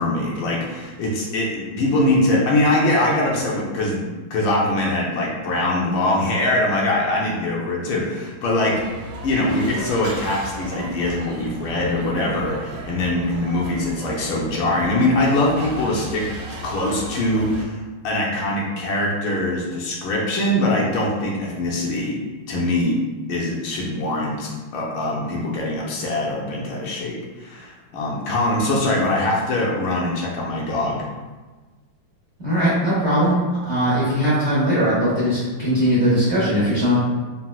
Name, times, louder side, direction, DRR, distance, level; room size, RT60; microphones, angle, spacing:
voice 1, 0.0-4.0 4.3-8.8 9.2-16.3 16.6-22.2 22.5-23.0 23.3-31.0, left 1 dB, 75° left, -3 dB, 1.3 m, -22 dB
sound 1, 8.7-17.6, right 1 dB, 85° right, 1.5 m, -35 dB
voice 2, 32.4-33.4 33.7-36.9, equal, 65° right, -10 dB, 0.7 m, -19 dB
4.1 x 2.0 x 2.2 m, 1.3 s
omnidirectional pair, 2.2 m